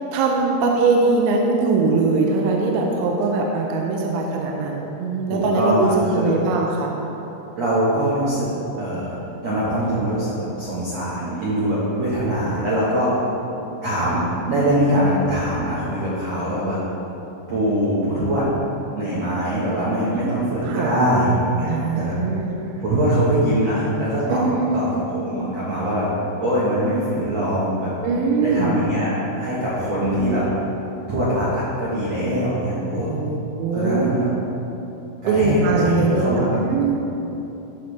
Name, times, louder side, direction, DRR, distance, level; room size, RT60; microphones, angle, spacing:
voice 1, 0.1-6.9 12.5-12.8 13.6-13.7 17.6-17.8 20.6-21.0 21.6-22.8 24.3-24.9 28.0-28.8 33.1-34.0 35.3-37.0, right 3 dB, 85° right, 0 dB, 3.0 m, -21 dB
voice 2, 5.3-6.3 7.6-8.5 8.8-9.1 9.4-13.1 13.8-16.8 17.5-18.4 19.0-21.7 21.9-22.1 22.8-24.4 24.7-26.1 26.4-27.9 28.4-29.1 29.4-30.4 31.1-33.1 33.7-34.3 35.2-36.6, right 1 dB, 70° right, -9 dB, 1.6 m, -22 dB
14.0 x 5.5 x 3.3 m, 3.0 s
omnidirectional pair, 5.2 m